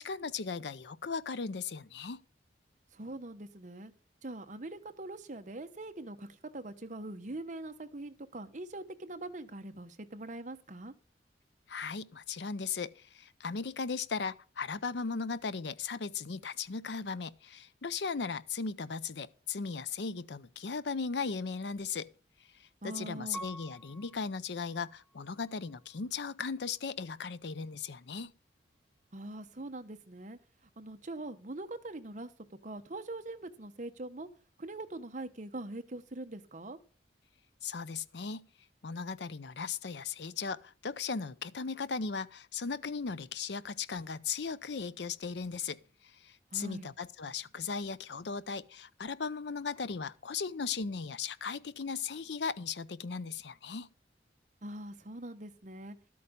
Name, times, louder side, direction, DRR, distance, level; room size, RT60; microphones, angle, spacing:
voice 1, 0.0-2.2 11.7-22.1 22.8-28.3 37.6-38.4 38.8-45.8 46.2-53.9, left 5 dB, 70° left, 0.6 m, -37 dB
voice 2, 2.9-3.9 4.2-10.9 22.8-23.4 29.1-30.4 30.8-34.3 34.6-36.8 46.5-46.9 54.6-56.0, right 2 dB, 45° right, 1.1 m, -43 dB
Piano, 23.3-26.1 26.7-27.4, right 1 dB, 15° left, 1.6 m, -50 dB
12.5 x 8.5 x 5.2 m
head